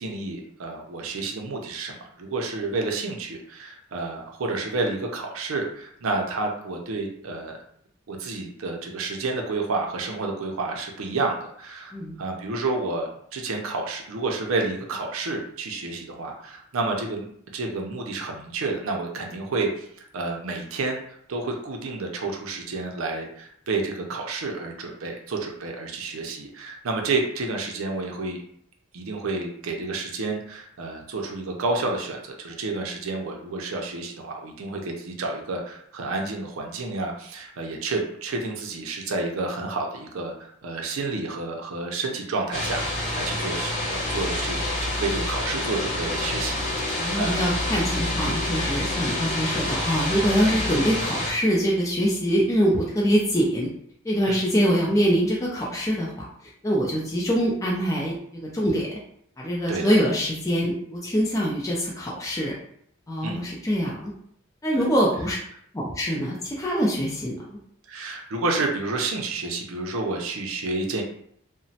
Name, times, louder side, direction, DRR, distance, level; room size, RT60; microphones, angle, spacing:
voice 1, 0.0-7.6 8.1-17.3 17.5-21.0 21.3-28.4 28.9-47.5 54.3-54.5 59.7-59.9 63.2-63.4 64.8-64.9 67.9-71.0, right 3 dB, 90° right, 2 dB, 0.5 m, -30 dB
sound 1, 42.5-51.3, left 1 dB, 35° left, 1.0 m, -27 dB
voice 2, 47.0-53.7 54.0-56.2 56.6-59.0 59.4-62.5 63.1-64.1 64.6-65.4 65.7-67.4, equal, 15° left, -4 dB, 0.4 m, -24 dB
2.9 x 2.1 x 2.7 m, 0.68 s
head